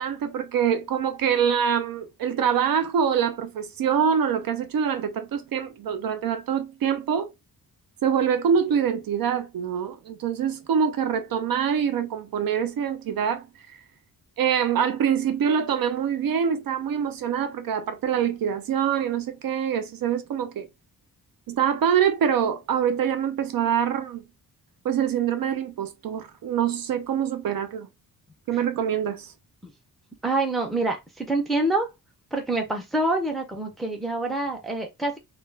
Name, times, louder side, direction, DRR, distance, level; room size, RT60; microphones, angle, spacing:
voice 1, 0.0-7.3 8.0-13.5 14.4-20.7 21.5-24.2 24.8-27.9 28.5-29.3, right 8 dB, 70° right, 0.5 m, -25 dB
voice 2, 30.2-31.9 32.3-35.2, right 2 dB, ahead, 0.5 m, -26 dB
2.3 x 2.2 x 3.1 m
wide cardioid pair, 175°, 36 cm